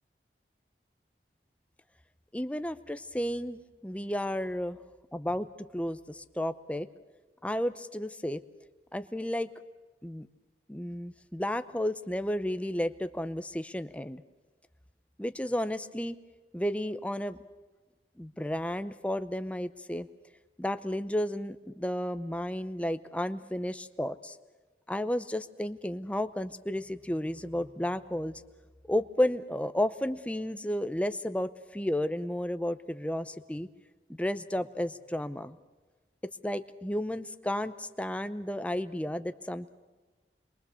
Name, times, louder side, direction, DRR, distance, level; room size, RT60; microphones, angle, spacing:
voice 1, 2.3-4.8 5.1-6.9 7.4-8.4 8.9-9.5 10.0-10.3 10.7-14.2 15.2-16.2 16.5-17.4 18.2-20.1 20.6-24.4 24.9-28.4 28.9-33.7 34.2-35.6 36.4-39.7, left 1 dB, 5° left, 11 dB, 0.7 m, -32 dB
27.5 x 22.5 x 7.0 m, 1.3 s
head